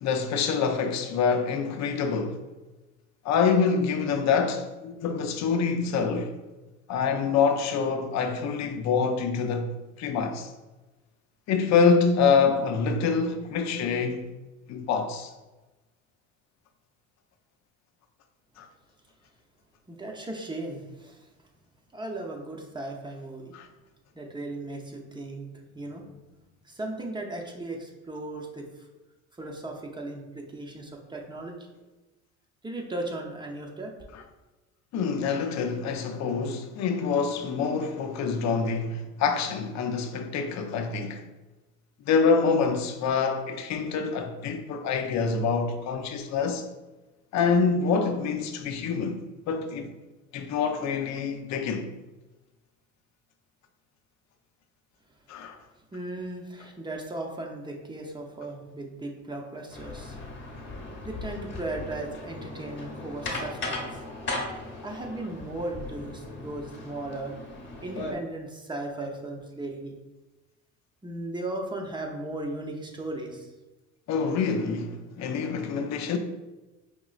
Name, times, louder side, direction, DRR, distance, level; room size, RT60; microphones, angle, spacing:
voice 1, 0.0-2.4 3.2-6.3 6.9-10.5 11.5-14.3 14.7-15.3 18.6-18.7 23.5-23.7 34.1-34.2 34.9-41.2 42.1-46.7 47.3-49.2 49.5-49.9 50.3-51.9 55.3-55.6 74.1-76.2, left 5 dB, 60° left, 0.6 m, -26 dB
voice 2, 19.9-21.3 21.9-23.5 24.1-25.5 25.7-26.3 26.7-28.9 29.4-31.6 32.6-33.9 55.9-60.2 61.0-64.0 64.8-67.4 67.8-70.0 71.0-73.5, right 2 dB, 15° right, 0.7 m, -36 dB
sound 1, 59.7-68.1, left 2 dB, 35° left, 1.0 m, -37 dB
5.1 x 2.9 x 2.4 m
cardioid pair, 105°, 31 cm